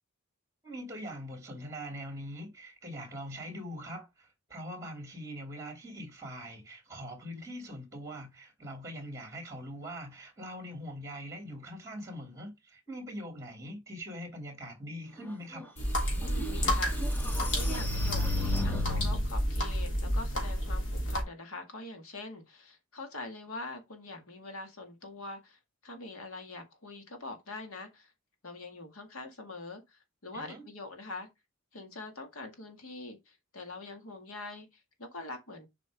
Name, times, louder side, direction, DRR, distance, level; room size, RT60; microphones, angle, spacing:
voice 1, 0.6-15.7 30.3-30.6, equal, 15° right, 2.8 m, -42 dB
sound 1, 15.6-15.7 16.2-19.3, left 3 dB, 10° left, 1.0 m, -35 dB
sound 2, 15.8-21.2, equal, 60° left, 3.0 m, -30 dB
voice 2, 16.1-17.2 17.5-28.1 28.4-31.3 31.7-35.7, left 2 dB, 85° left, 2.0 m, -44 dB
7.4 x 5.1 x 3.5 m
head